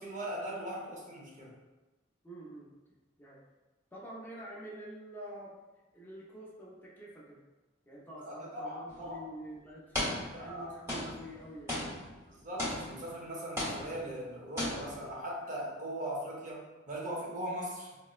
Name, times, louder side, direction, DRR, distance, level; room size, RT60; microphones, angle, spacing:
voice 1, 0.0-1.5 8.2-9.2 10.0-10.7 12.3-18.0, right 1 dB, 45° right, -3 dB, 0.7 m, -40 dB
voice 2, 2.2-2.7 3.2-3.5 3.9-5.6 5.9-7.4 7.9-10.0 10.3-11.9, right 1 dB, 10° left, -5 dB, 0.5 m, -47 dB
sound 1, 8.9-9.1 9.9-10.6 10.9-13.2 13.6-14.3 14.6-15.1, left 1 dB, 15° right, 1.0 m, -37 dB
3.9 x 2.1 x 2.3 m, 1.1 s
head